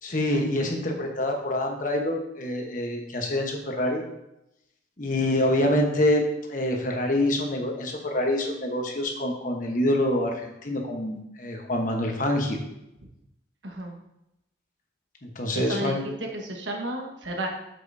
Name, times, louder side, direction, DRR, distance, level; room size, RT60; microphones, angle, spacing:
voice 1, 0.0-4.0 5.0-12.6 15.2-16.0, left 1 dB, 45° left, 2 dB, 1.1 m, -26 dB
voice 2, 13.6-14.0 15.5-17.5, right 1 dB, 90° right, 1 dB, 1.4 m, -32 dB
8.1 x 7.5 x 2.7 m, 0.86 s
head